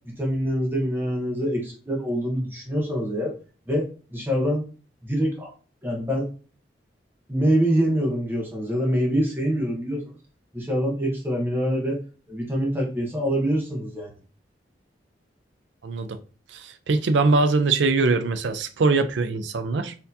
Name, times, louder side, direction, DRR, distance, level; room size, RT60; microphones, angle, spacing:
voice 1, 0.0-3.3 3.7-4.7 5.0-5.5 5.8-6.3 7.3-10.2 10.5-12.0 12.3-14.1, equal, 10° right, 0.8 m, -25 dB
voice 2, 15.8-16.2 16.5-19.9, right 3 dB, 75° right, 0.4 m, -22 dB
4.2 x 2.7 x 2.6 m
head